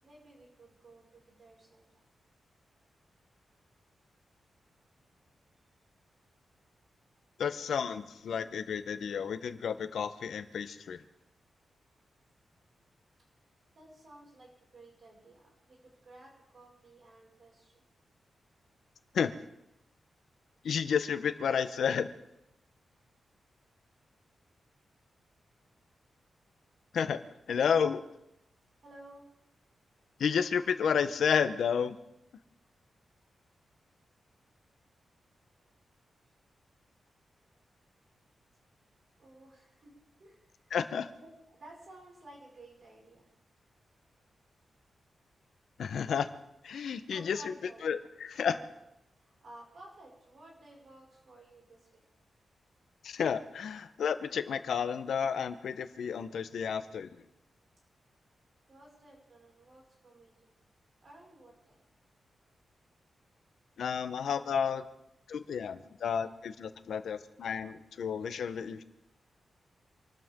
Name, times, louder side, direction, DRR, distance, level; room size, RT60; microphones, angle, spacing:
voice 1, 0.0-2.0 5.2-5.3 13.7-17.8 28.8-29.3 32.6-32.7 35.5-35.8 36.2-36.3 39.2-39.9 40.2-40.7 41.2-43.3 47.1-47.9 48.4-48.8 49.2-52.0 58.7-60.5 61.0-61.8, right 1 dB, 45° right, -2 dB, 5.9 m, -55 dB
voice 2, 7.4-11.0 19.1-19.3 20.6-22.1 26.9-27.2 27.5-28.1 30.2-32.0 40.7-41.1 45.8-46.3 46.6-47.5 47.8-48.5 53.0-57.2 63.8-64.8 65.3-68.8, left 7 dB, 75° left, 11 dB, 1.0 m, -31 dB
27.0 x 13.0 x 3.8 m, 0.86 s
wide cardioid pair, 175°, 0 cm